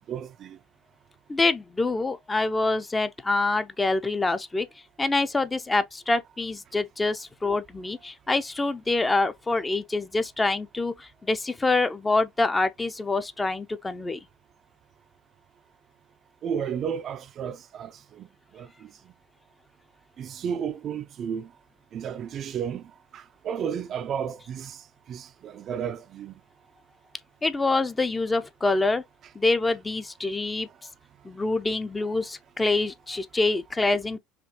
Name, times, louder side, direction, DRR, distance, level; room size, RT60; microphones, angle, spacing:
voice 1, 0.1-0.6 16.4-18.3 18.5-18.9 20.2-21.5 21.9-24.8 25.1-26.3, right 8 dB, 40° right, 0.5 m, -33 dB
voice 2, 1.3-4.7 5.0-14.2 27.4-29.0 29.3-30.7 31.2-34.2, left 3 dB, 15° left, 0.6 m, -26 dB
5.1 x 3.1 x 2.8 m
figure-of-eight pair, 70°, 0 cm